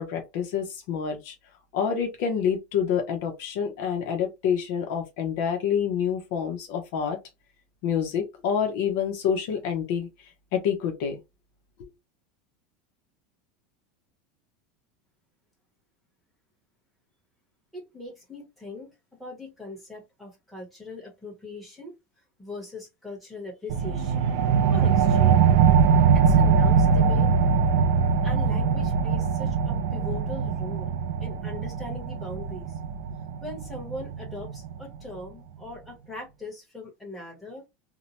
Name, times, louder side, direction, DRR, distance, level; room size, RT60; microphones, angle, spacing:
voice 1, 0.0-1.3 1.7-7.2 7.8-10.1 10.5-11.2 11.8-11.9, left 7 dB, 60° left, 0.7 m, -27 dB
voice 2, 17.7-18.9 19.2-21.9 22.4-24.3 24.7-25.5 26.1-27.3 28.2-30.9 31.2-32.8 33.4-37.6, left 2 dB, ahead, 1.1 m, -40 dB
sound 1, 23.7-34.8, right 6 dB, 60° right, 0.3 m, -22 dB
2.7 x 2.1 x 2.8 m
supercardioid pair, 170°, 0 cm